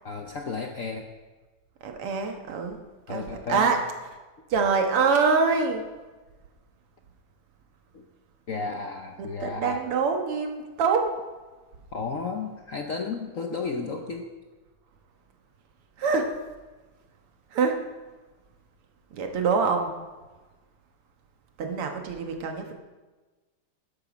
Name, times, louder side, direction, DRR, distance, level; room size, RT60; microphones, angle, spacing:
voice 1, 0.0-1.1 3.1-3.7 7.9-8.1 8.5-9.8 11.9-14.3, left 4 dB, 60° left, 4 dB, 0.8 m, -33 dB
voice 2, 1.8-2.8 3.1-3.8 4.5-5.9 9.2-11.1 16.0-16.3 17.5-17.8 19.1-19.9 21.6-22.7, right 5 dB, 85° right, 4 dB, 2.3 m, -25 dB
13.0 x 10.5 x 5.2 m, 1.3 s
omnidirectional pair, 2.4 m